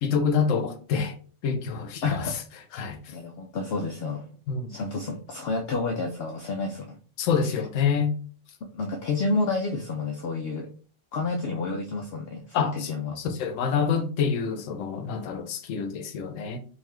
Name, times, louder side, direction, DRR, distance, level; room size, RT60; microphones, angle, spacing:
voice 1, 0.0-1.1 1.4-2.2 2.7-3.0 4.5-4.8 7.2-8.1 12.5-12.9 13.2-16.6, left 6 dB, 90° left, 1.0 m, -27 dB
voice 2, 2.0-2.4 3.1-4.4 4.7-7.0 7.4-7.6 8.7-10.7 11.1-13.2, left 3 dB, 65° left, 0.7 m, -30 dB
3.8 x 2.6 x 3.1 m
omnidirectional pair, 1.3 m